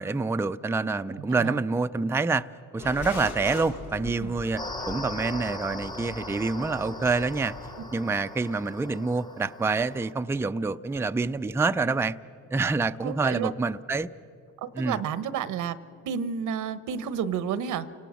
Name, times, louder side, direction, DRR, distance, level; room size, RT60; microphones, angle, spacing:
voice 1, 0.0-2.4 2.7-4.6 4.9-7.5 7.9-12.2 12.5-14.1 14.8-15.0, right 3 dB, 10° right, 10 dB, 0.4 m, -27 dB
voice 2, 1.1-1.6 4.2-4.3 13.0-13.5 14.6-15.8 16.0-17.9, right 7 dB, 85° right, 14 dB, 1.0 m, -31 dB
sound 1, 2.8-7.8, left 3 dB, 85° left, 3.5 m, -40 dB
sound 2, 4.6-10.1, left 1 dB, 15° left, 1.0 m, -39 dB
29.0 x 18.5 x 6.2 m, 2.7 s
cardioid pair, 90°, 30 cm